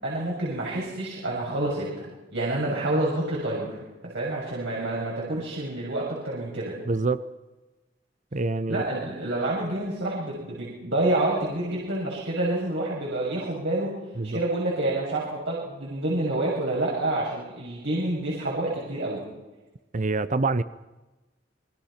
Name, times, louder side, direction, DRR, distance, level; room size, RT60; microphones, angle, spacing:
voice 1, 0.0-3.8 4.0-6.7 8.7-13.9 14.3-19.2, right 2 dB, 70° right, -5 dB, 7.3 m, -28 dB
voice 2, 6.9-7.2 8.3-8.8 14.2-14.4 19.9-20.6, right 3 dB, 40° right, 14 dB, 0.7 m, -25 dB
28.0 x 23.5 x 5.9 m, 1.1 s
head